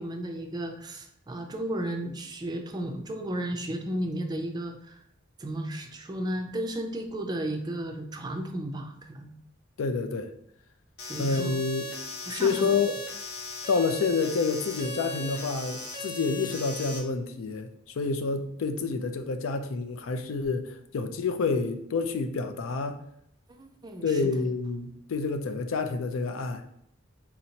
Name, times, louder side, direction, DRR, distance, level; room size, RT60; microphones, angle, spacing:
voice 1, 0.0-5.0 5.4-9.3 11.1-11.5 12.3-12.7 23.6-24.3, right 1 dB, 20° right, 4 dB, 0.3 m, -34 dB
voice 2, 9.8-10.3 11.2-11.9 12.3-13.0 13.7-17.7 18.0-23.0 24.0-26.6, left 4 dB, 85° left, 7 dB, 0.4 m, -28 dB
sound 1, 11.0-17.0, left 1 dB, 60° left, 0.9 m, -38 dB
4.1 x 2.8 x 2.8 m, 0.72 s
head